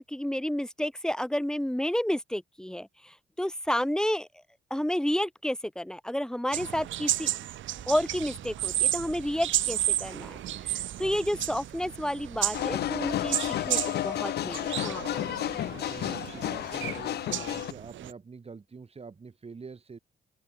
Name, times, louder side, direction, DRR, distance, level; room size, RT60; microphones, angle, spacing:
voice 1, 0.0-4.3 4.7-7.3 7.9-13.4 13.7-15.2, equal, 5° left, 2.5 m, -31 dB
sound 1, 6.5-18.1, right 13 dB, 75° right, 1.4 m, -33 dB
sound 2, 7.7-13.9, right 7 dB, 50° right, 6.0 m, -50 dB
sound 3, 12.5-17.7, left 13 dB, 55° left, 0.4 m, -31 dB
voice 2, 15.7-20.0, right 4 dB, 30° right, 2.5 m, -45 dB
open air
cardioid pair, 90°, 20 cm